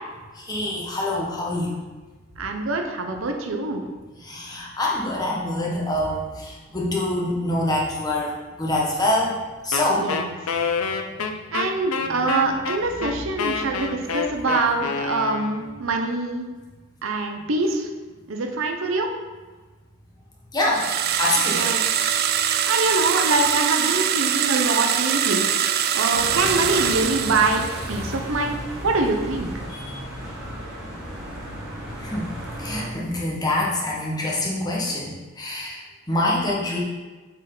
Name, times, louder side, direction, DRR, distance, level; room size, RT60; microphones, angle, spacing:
voice 1, 0.3-1.8 4.2-9.4 9.6-10.1 12.1-12.2 13.6-13.7 20.5-20.9 21.2-21.7 29.7-30.0 32.0-32.3 32.6-36.8, left 1 dB, 20° left, -4 dB, 1.2 m, -25 dB
voice 2, 2.4-3.8 9.9-10.4 11.5-16.5 17.0-17.9 18.3-19.1 21.5-21.8 22.7-25.5 25.9-28.6 28.8-29.5, right 3 dB, 70° right, 3 dB, 0.7 m, -24 dB
Wind instrument woodwind instrument, 9.7-15.8, left 5 dB, 85° left, 0.6 m, -27 dB
sound 1, 20.7-28.1, right 9 dB, 45° right, 0.3 m, -23 dB
sound 2, 26.1-32.9, equal, 5° right, 2.2 m, -34 dB
7.2 x 4.5 x 3.9 m, 1.3 s
head